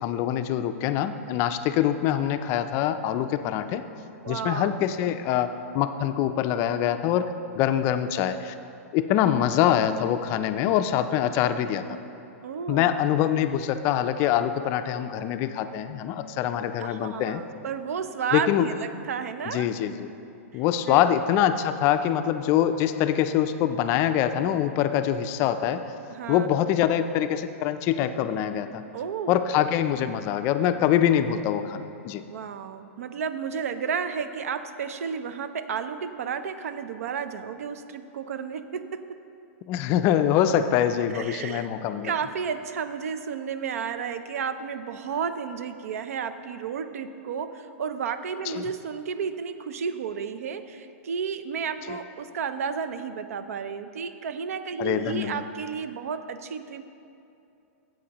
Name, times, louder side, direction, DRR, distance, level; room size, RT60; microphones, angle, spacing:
voice 1, 0.0-3.8 4.3-5.5 5.7-7.2 7.6-8.5 8.9-12.0 12.7-17.4 18.3-18.7 19.5-20.1 20.5-25.9 26.3-28.8 29.3-32.2 39.7-42.1 48.5-48.6 54.8-55.4, left 10 dB, 30° left, 9 dB, 0.3 m, -24 dB
voice 2, 4.2-4.8 12.4-12.9 16.8-19.7 20.9-21.0 21.3-21.5 26.1-26.5 28.9-29.4 32.3-39.0 41.1-41.7 42.0-56.8, right 6 dB, 75° right, 11 dB, 0.5 m, -32 dB
13.5 x 7.7 x 2.9 m, 2.7 s
hypercardioid pair, 150°, 8 cm